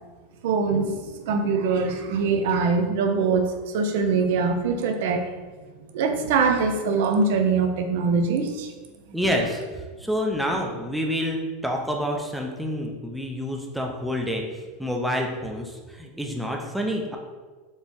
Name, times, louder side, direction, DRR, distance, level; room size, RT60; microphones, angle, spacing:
voice 1, 0.4-5.3 5.9-8.7, right 4 dB, 70° right, 5 dB, 0.5 m, -23 dB
voice 2, 9.1-14.4 14.8-17.2, equal, ahead, 0 dB, 0.5 m, -28 dB
4.2 x 2.9 x 3.5 m, 1.3 s
supercardioid pair, 150°, 0 cm